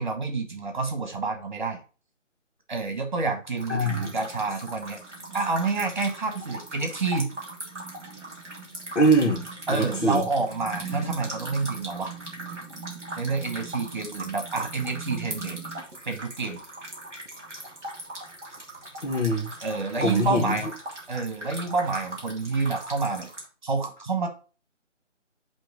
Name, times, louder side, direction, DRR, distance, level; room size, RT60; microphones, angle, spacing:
voice 1, 0.0-1.8 2.7-5.0 5.3-7.3 9.7-12.1 13.2-15.7 16.1-16.6 19.6-20.7 21.1-23.3 23.6-24.3, right 3 dB, 40° right, 4 dB, 1.3 m, -28 dB
sound 1, 3.6-23.4, right 2 dB, ahead, 1.1 m, -39 dB
voice 2, 3.7-4.1 9.0-10.2 19.0-19.5 20.0-20.6, right 1 dB, 65° left, 0 dB, 1.7 m, -23 dB
7.6 x 3.1 x 4.8 m, 0.35 s
figure-of-eight pair, 160°, 37 cm